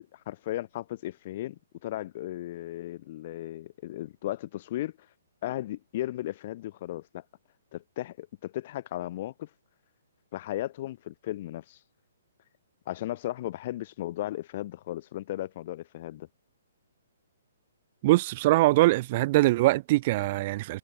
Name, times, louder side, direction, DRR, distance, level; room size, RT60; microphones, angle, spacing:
voice 1, 0.0-4.9 5.4-7.2 7.7-9.5 10.3-11.8 12.9-16.3, left 14 dB, 45° left, 2.6 m, -36 dB
voice 2, 18.0-20.8, right 18 dB, 40° right, 1.8 m, -22 dB
hypercardioid pair, 130°, 0 cm